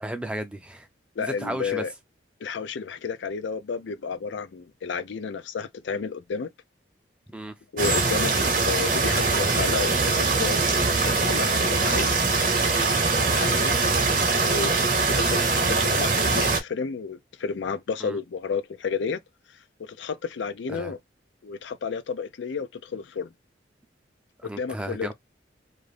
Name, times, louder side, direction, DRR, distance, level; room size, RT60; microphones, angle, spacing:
voice 1, 0.0-0.9 1.2-1.8 7.3-7.5 18.0-18.2 20.7-21.0 24.4-25.1, right 1 dB, 5° right, 0.4 m, -34 dB
voice 2, 1.2-1.9 2.4-6.5 7.7-12.3 13.3-13.7 14.4-14.7 15.1-19.2 19.8-21.0 21.4-23.3 24.4-25.1, left 5 dB, 80° left, 0.4 m, -31 dB
sound 1, 7.8-16.6, right 3 dB, 45° right, 0.8 m, -22 dB
2.5 x 2.5 x 3.2 m
head